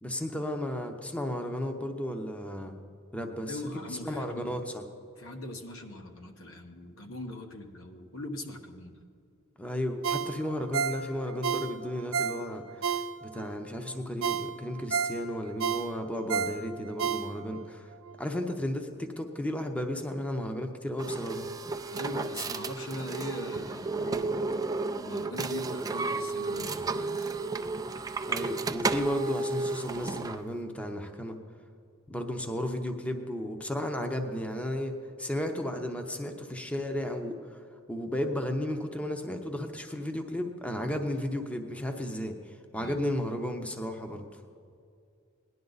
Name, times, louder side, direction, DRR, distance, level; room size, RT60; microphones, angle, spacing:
voice 1, 0.0-2.7 3.1-4.8 9.6-12.9 13.2-17.9 18.2-21.5 28.3-31.4 32.1-37.6 37.9-44.4, left 1 dB, 5° left, 5 dB, 0.7 m, -34 dB
voice 2, 3.5-4.5 5.2-9.0 21.9-27.3 42.7-43.0, left 1 dB, 75° left, 4 dB, 1.2 m, -41 dB
Ringtone, 10.0-13.5 13.9-14.0 14.2-17.7 18.1-18.2, right 7 dB, 70° right, 0.6 m, -31 dB
sound 1, 21.0-30.4, right 3 dB, 20° right, 0.4 m, -32 dB
18.5 x 11.0 x 4.0 m, 2.4 s
head